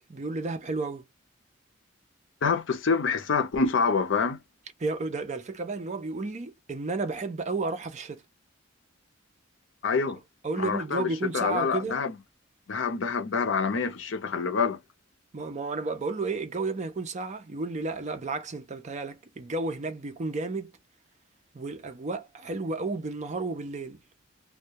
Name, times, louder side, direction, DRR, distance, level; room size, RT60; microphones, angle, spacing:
voice 1, 0.1-1.0 4.8-8.2 10.4-12.0 15.3-20.7 21.5-24.0, right 3 dB, 35° right, 0.5 m, -32 dB
voice 2, 2.4-4.4 9.8-10.2 10.6-12.1 12.7-14.8, left 5 dB, 70° left, 0.6 m, -26 dB
2.2 x 2.2 x 2.7 m
head